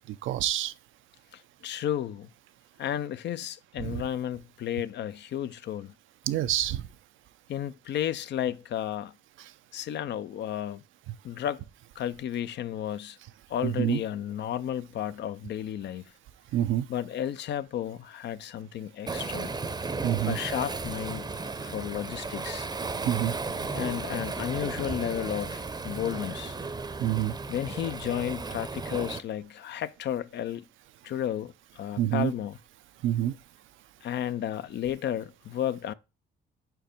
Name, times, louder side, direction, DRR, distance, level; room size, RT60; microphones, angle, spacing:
voice 1, 0.2-0.7 3.8-4.0 6.3-6.9 13.6-14.0 16.5-16.9 20.0-20.4 23.1-23.3 27.0-27.3 32.0-32.3 33.0-33.3, right 12 dB, 80° right, 0.6 m, -27 dB
voice 2, 1.3-2.3 2.8-5.9 7.5-9.1 9.7-10.8 11.2-11.6 12.0-13.2 13.5-16.0 16.9-19.6 20.3-21.3 21.6-22.7 23.7-26.6 27.5-30.7 31.0-32.6 34.0-35.9, left 10 dB, 65° left, 0.5 m, -33 dB
Waves surf, 19.1-29.2, right 3 dB, 20° right, 0.6 m, -35 dB
5.0 x 4.6 x 5.1 m
cardioid pair, 90°, 20 cm